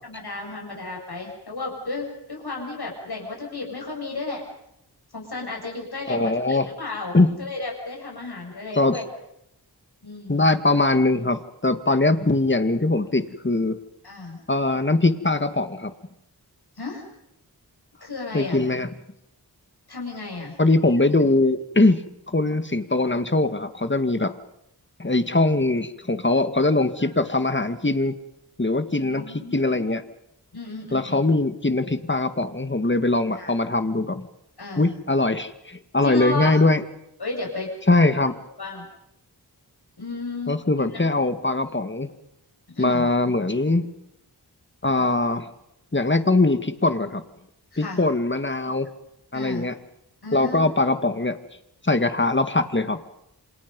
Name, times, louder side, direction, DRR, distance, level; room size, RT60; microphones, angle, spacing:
voice 1, 0.1-4.4 5.1-9.0 10.0-10.4 14.0-14.4 16.8-17.0 18.0-18.6 19.9-20.6 27.0-27.1 28.9-29.8 30.5-31.2 33.4-33.5 34.6-34.9 36.0-36.5 37.2-37.7 38.6-38.9 40.0-41.0 42.7-43.1 47.7-48.0 49.3-49.7 50.2-50.7, left 3 dB, 70° left, 0 dB, 7.3 m, -33 dB
voice 2, 6.1-6.7 7.1-7.3 8.7-9.0 10.3-13.8 14.5-15.9 18.3-18.9 20.6-22.0 22.3-24.3 25.0-28.1 28.6-30.0 30.9-34.3 34.8-36.8 37.9-38.4 40.5-42.1 42.8-43.8 44.8-45.5 45.9-47.2 47.8-48.9 49.3-49.7 50.3-51.4 51.8-53.0, left 2 dB, 30° left, 10 dB, 1.9 m, -21 dB
28.0 x 27.5 x 5.4 m, 0.82 s
wide cardioid pair, 50°, 40 cm